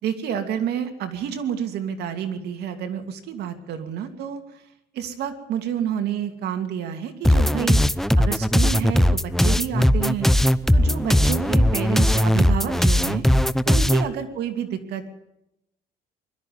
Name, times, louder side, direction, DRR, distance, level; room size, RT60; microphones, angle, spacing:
voice 1, 0.0-4.6 4.9-10.3 10.7-13.2 13.6-15.1, right 9 dB, 75° right, 7 dB, 2.7 m, -29 dB
sound 1, 7.2-14.1, equal, ahead, 0.7 m, -19 dB
21.5 x 12.5 x 9.6 m, 0.86 s
cardioid pair, 110°, 17 cm